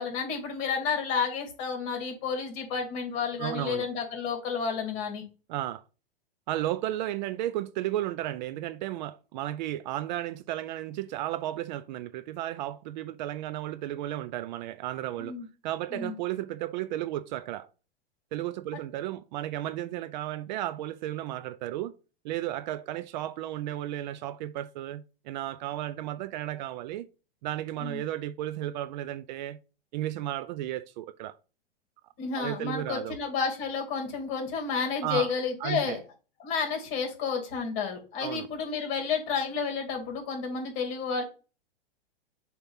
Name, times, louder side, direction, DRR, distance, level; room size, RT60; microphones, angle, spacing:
voice 1, 0.0-5.2 15.2-15.4 15.9-16.1 27.8-28.0 32.2-36.0 36.4-41.2, left 5 dB, 40° left, 2.7 m, -31 dB
voice 2, 3.4-3.9 5.5-5.8 6.5-15.4 15.6-17.7 18.3-21.9 22.2-27.1 27.4-29.6 29.9-31.4 32.3-33.2 35.0-35.3 35.6-36.0 38.2-38.5, right 13 dB, 45° right, 0.4 m, -33 dB
7.0 x 2.9 x 5.6 m
hypercardioid pair, 125°, 31 cm